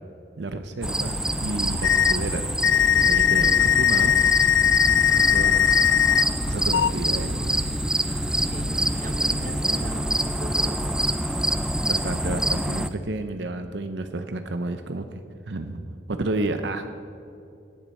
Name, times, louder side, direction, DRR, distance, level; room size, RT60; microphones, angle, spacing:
voice 1, 0.4-2.5 2.9-4.1 5.1-6.0 6.4-7.8 11.9-15.2 15.5-16.9, right 2 dB, 75° right, 8 dB, 0.7 m, -31 dB
sound 1, 0.8-12.9, right 1 dB, 5° right, 0.3 m, -26 dB
sound 2, 1.8-2.1 2.6-6.2 6.7-6.9, left 10 dB, 90° left, 0.3 m, -19 dB
voice 2, 8.5-10.8, right 1 dB, 45° right, 7 dB, 1.0 m, -38 dB
18.0 x 10.5 x 4.3 m, 2.7 s
head